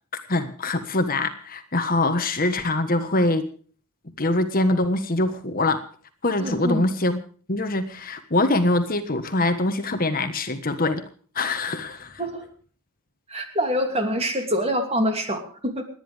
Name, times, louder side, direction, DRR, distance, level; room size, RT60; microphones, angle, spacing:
voice 1, 0.3-3.4 4.2-5.8 6.2-7.2 7.5-11.0 11.3-12.2, left 2 dB, 40° left, 9 dB, 1.4 m, -23 dB
voice 2, 6.4-6.8 12.2-12.4 13.3-15.8, equal, 25° right, 5 dB, 2.8 m, -25 dB
29.5 x 10.5 x 3.5 m, 0.43 s
head